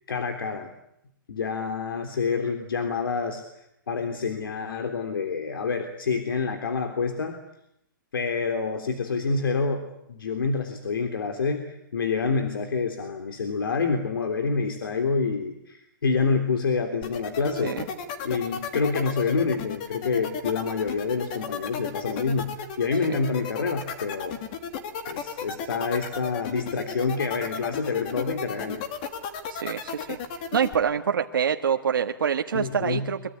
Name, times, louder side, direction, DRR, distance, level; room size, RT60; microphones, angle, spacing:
voice 1, 0.1-0.7 1.3-7.4 8.1-17.7 18.2-24.4 25.1-28.8 32.5-33.1, left 4 dB, 85° left, 6 dB, 3.5 m, -27 dB
sound 1, 17.0-30.7, left 7 dB, 25° left, 1.9 m, -34 dB
voice 2, 29.5-30.2 30.5-33.3, right 7 dB, 75° right, 5 dB, 1.5 m, -26 dB
24.0 x 23.5 x 9.7 m, 0.79 s
hypercardioid pair, 180°, 11 cm